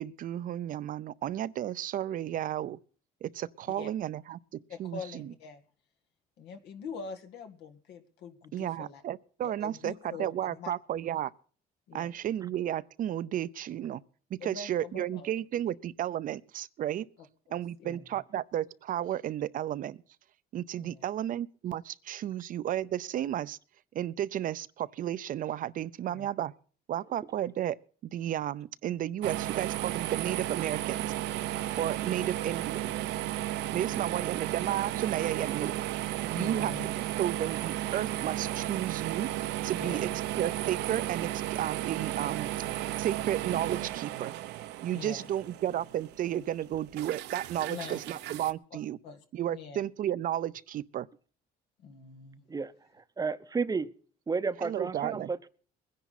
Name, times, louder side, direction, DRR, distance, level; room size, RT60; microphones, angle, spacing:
voice 1, 0.0-2.8 3.2-4.4 4.8-5.3 8.5-11.3 11.9-14.0 14.4-17.1 17.5-20.0 20.5-23.6 23.9-26.5 26.9-27.8 28.0-31.1 31.8-32.9 33.7-35.7 36.2-36.7 37.2-39.3 39.6-40.1 40.4-42.5 43.0-44.3 44.8-49.0 49.3-51.1 54.6-55.3, right 11 dB, 55° right, 0.6 m, -33 dB
voice 2, 4.7-5.6 6.4-9.0 9.4-10.7 11.9-12.2 14.4-15.3 17.5-18.0 20.8-21.0 26.1-26.3 33.8-34.2 36.3-36.9 39.8-40.1 44.9-45.3 47.7-48.2 49.0-49.2 49.5-49.8 51.8-52.4, left 6 dB, 85° left, 1.9 m, -44 dB
sound 1, 29.2-48.5, right 14 dB, 85° right, 0.8 m, -34 dB
voice 3, 53.2-53.9 54.3-55.5, right 4 dB, 20° right, 0.7 m, -31 dB
22.0 x 10.5 x 4.1 m
cardioid pair, 110°, 17 cm